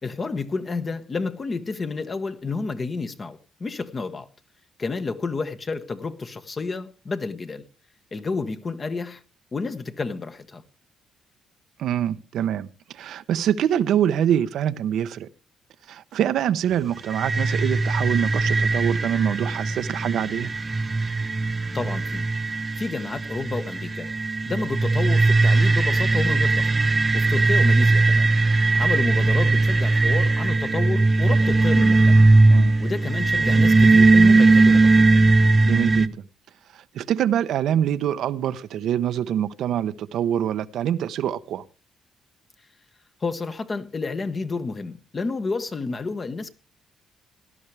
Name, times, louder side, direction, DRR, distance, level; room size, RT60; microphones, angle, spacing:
voice 1, 0.0-4.3 4.8-7.6 8.1-9.2 9.5-10.6 21.7-22.3 22.8-24.1 24.5-26.7 27.1-28.3 28.7-32.3 32.8-35.2 43.2-46.5, left 4 dB, 35° left, 1.3 m, -30 dB
voice 2, 11.8-15.3 15.9-20.5 32.5-32.8 35.6-36.2 36.7-41.6, right 10 dB, 75° right, 0.7 m, -25 dB
sound 1, 17.1-36.1, right 3 dB, 25° right, 0.8 m, -19 dB
17.5 x 12.0 x 3.3 m
cardioid pair, 90°, 0 cm